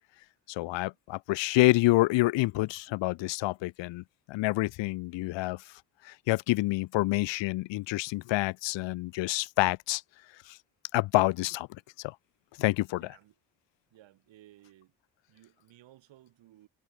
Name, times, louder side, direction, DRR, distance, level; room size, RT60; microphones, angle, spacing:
voice 1, 0.5-5.6 6.0-10.0 10.5-10.6 10.9-11.7 12.0-12.1 12.6-13.1, left 20 dB, 70° left, 0.8 m, -27 dB
voice 2, 12.9-13.3 13.9-14.9 15.3-16.7, right 14 dB, 75° right, 7.6 m, -57 dB
hypercardioid pair, 50°, 45 cm